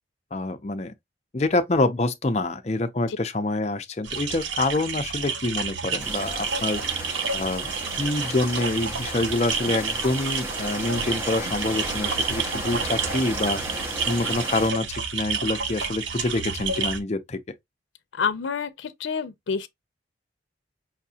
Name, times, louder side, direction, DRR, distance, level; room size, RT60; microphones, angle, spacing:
voice 1, 0.3-0.9 1.3-17.4, left 2 dB, 35° left, 0.5 m, -26 dB
sound 1, 4.0-17.0, right 5 dB, 80° right, 0.7 m, -30 dB
sound 2, 6.0-14.7, right 1 dB, 15° right, 0.7 m, -35 dB
voice 2, 18.1-19.7, left 6 dB, 85° left, 0.5 m, -28 dB
5.8 x 2.5 x 2.7 m
head